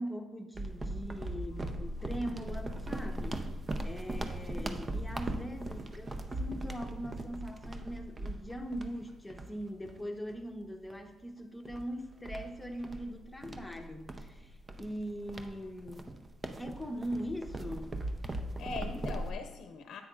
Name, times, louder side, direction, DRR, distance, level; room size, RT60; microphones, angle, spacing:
voice 1, 0.0-3.5 3.8-16.1 16.6-18.0, equal, 10° left, 3 dB, 1.0 m, -41 dB
sound 1, 0.5-10.4 10.9-11.1 11.6-19.3, right 1 dB, 30° right, 0.6 m, -39 dB
voice 2, 18.2-20.0, left 4 dB, 75° left, 5 dB, 0.7 m, -42 dB
9.7 x 8.2 x 2.5 m, 1.1 s
cardioid pair, 90°, 0 cm